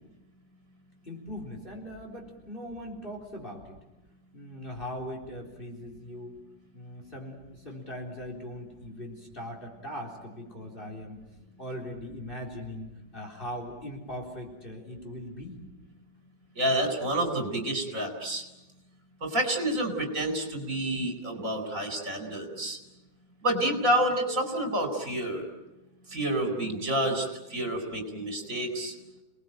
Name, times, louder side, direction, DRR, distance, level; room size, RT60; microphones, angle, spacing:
voice 1, 1.0-3.8 4.3-6.3 6.7-11.2 11.6-12.9 13.1-15.6, equal, 30° left, 1 dB, 4.1 m, -40 dB
voice 2, 16.6-18.4 19.2-22.8 23.4-25.5 26.1-28.9, right 1 dB, 45° right, 5 dB, 4.8 m, -29 dB
29.5 x 20.0 x 9.1 m, 1.0 s
omnidirectional pair, 1.9 m